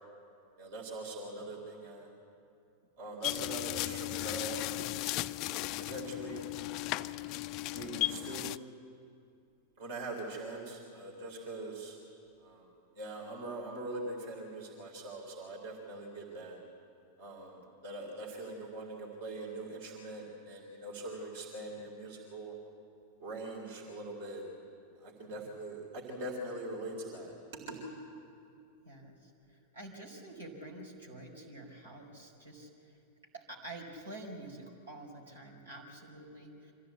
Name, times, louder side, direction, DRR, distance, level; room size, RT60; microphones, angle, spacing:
voice 1, 0.6-2.1 3.0-4.8 5.7-6.5 7.7-8.5 9.8-12.0 12.4-12.7 12.9-16.6 17.2-22.6 23.2-24.4 25.0-27.8, right 2 dB, 55° right, -1 dB, 3.8 m, -42 dB
sound 1, 3.2-8.6, left 18 dB, 40° left, 0.4 m, -36 dB
voice 2, 28.8-33.0 33.3-36.7, right 1 dB, 75° right, -1 dB, 4.4 m, -48 dB
25.0 x 15.0 x 8.4 m, 2.6 s
figure-of-eight pair, 90°, 0 cm